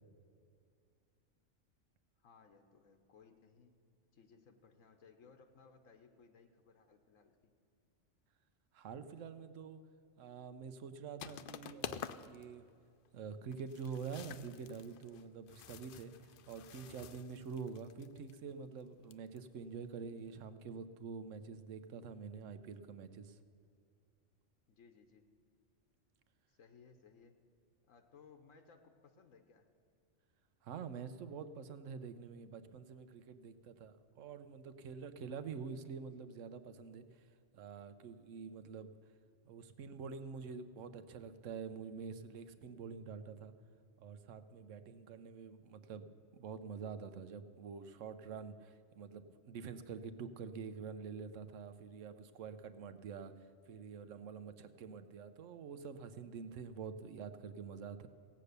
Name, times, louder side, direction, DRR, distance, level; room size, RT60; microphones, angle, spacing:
voice 1, 2.2-3.7 4.1-7.5 24.7-25.3 26.5-27.4 27.8-29.7, left 5 dB, 80° left, 5 dB, 1.3 m, -62 dB
voice 2, 8.7-9.8 10.2-12.6 13.1-23.4 30.6-37.3 37.5-38.9 39.5-43.5 44.0-46.1 46.3-53.3 53.7-58.1, right 6 dB, 75° right, 11 dB, 1.1 m, -47 dB
sound 1, 11.2-12.4 12.7-12.8 13.0-13.1 13.5-18.4 19.1-19.4, left 9 dB, 65° left, 0.5 m, -49 dB
16.5 x 8.5 x 6.7 m, 2.4 s
omnidirectional pair, 1.3 m